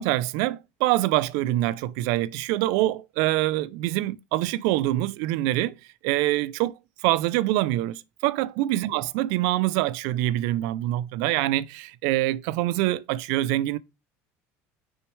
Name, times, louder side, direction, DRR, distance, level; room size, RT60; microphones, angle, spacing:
voice 1, 0.0-5.7 6.0-6.8 7.0-13.8, right 16 dB, 80° right, 0.4 m, -25 dB
6.3 x 6.2 x 3.2 m
cardioid pair, 140°, 6 cm